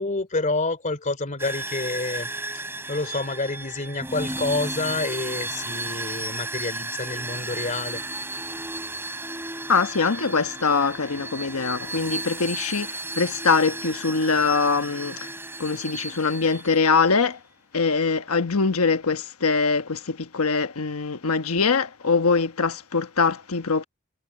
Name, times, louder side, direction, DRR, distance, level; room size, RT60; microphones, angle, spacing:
voice 1, 0.0-2.3 2.5-2.6 2.9-8.0, left 3 dB, 35° left, 3.1 m, -28 dB
sound 1, 1.4-17.0, right 2 dB, 10° right, 4.3 m, -34 dB
voice 2, 9.7-15.3 15.6-17.4 17.7-23.8, left 4 dB, 90° left, 1.2 m, -23 dB
head